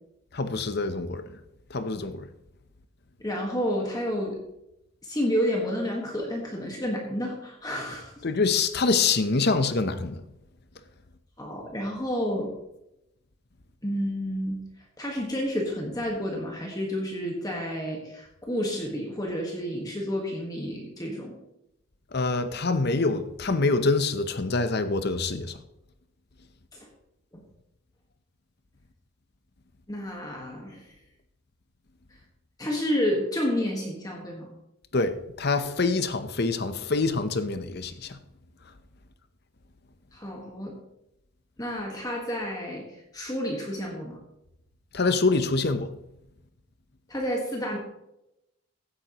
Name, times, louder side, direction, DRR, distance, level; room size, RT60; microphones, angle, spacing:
voice 1, 0.3-1.2 1.7-2.2 8.2-10.2 22.1-25.6 34.9-38.2 44.9-45.9, left 3 dB, 50° left, 0.8 m, -25 dB
voice 2, 3.2-4.4 5.0-8.1 11.4-12.5 13.8-14.6 15.0-21.4 26.7-26.9 27.3-27.4 29.9-30.9 32.6-34.5 40.1-40.8 41.6-44.2 47.1-47.8, equal, 15° left, 1.5 m, -30 dB
16.0 x 8.9 x 3.0 m
head